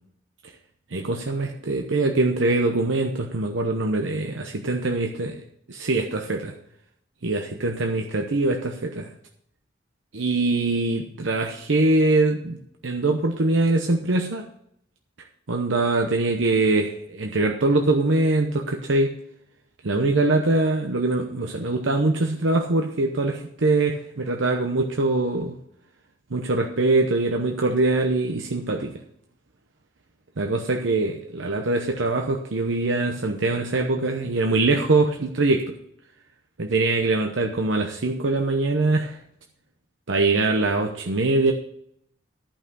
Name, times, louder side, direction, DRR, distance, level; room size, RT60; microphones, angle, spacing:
voice 1, 0.9-5.3 5.7-6.5 7.2-9.1 10.1-14.4 15.5-19.1 19.8-25.6 26.3-28.9 30.4-35.7 36.6-39.2 40.1-41.5, right 2 dB, 80° right, 3 dB, 0.9 m, -23 dB
11.0 x 5.8 x 6.8 m, 0.70 s
head